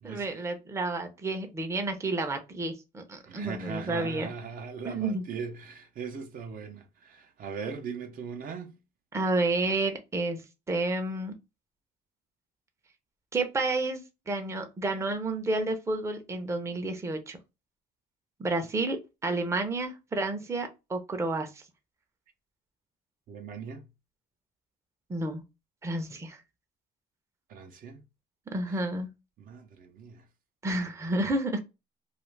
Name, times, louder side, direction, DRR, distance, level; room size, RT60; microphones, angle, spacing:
voice 1, 0.0-4.3 4.8-5.2 9.1-11.3 13.3-17.4 18.4-21.5 25.1-25.4 25.8-26.4 28.5-29.1 30.6-31.6, right 2 dB, 15° right, 0.6 m, -30 dB
voice 2, 3.3-8.8 23.3-23.8 27.5-28.0 28.7-28.8 29.4-30.2, right 6 dB, 55° right, 0.6 m, -39 dB
2.4 x 2.4 x 3.1 m
cardioid pair, 110°, 17 cm